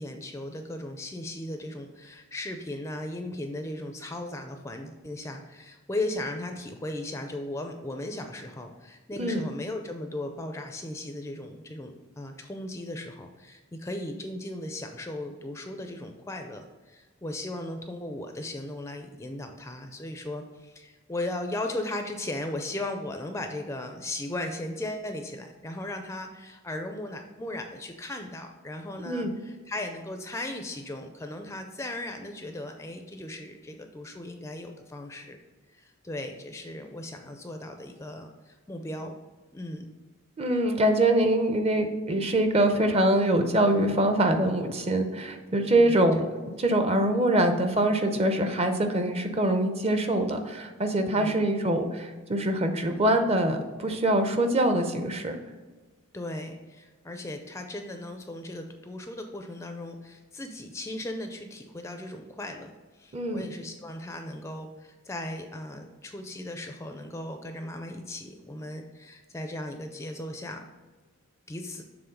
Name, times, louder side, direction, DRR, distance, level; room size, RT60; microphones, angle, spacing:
voice 1, 0.0-35.4 35.7-39.1 39.5-39.9 45.8-45.9 51.1-51.3 56.1-70.6 71.5-71.8, left 1 dB, 15° left, 5 dB, 0.4 m, -37 dB
voice 2, 40.4-46.3 46.6-55.4 63.1-63.4, right 1 dB, 30° right, 6 dB, 0.6 m, -24 dB
6.9 x 3.5 x 5.1 m, 1.3 s
head